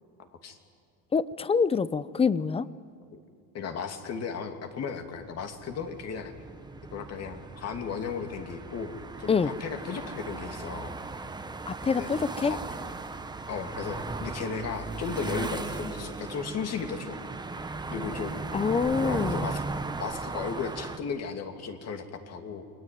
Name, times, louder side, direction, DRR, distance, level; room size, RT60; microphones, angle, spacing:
voice 1, 0.2-0.6 3.1-3.2 3.5-6.3 6.9-10.9 11.9-12.1 12.5-12.8 13.5-17.2 17.9-18.4 19.0-19.6 20.0-22.6, left 5 dB, 45° left, 6 dB, 2.8 m, -35 dB
voice 2, 1.1-2.7 9.3-9.5 11.7-12.5 18.5-19.5, left 5 dB, 15° left, 17 dB, 0.7 m, -26 dB
sound 1, 5.0-21.0, right 3 dB, 10° right, 1.2 m, -37 dB
28.5 x 21.5 x 9.4 m, 2.3 s
cardioid pair, 130°, 37 cm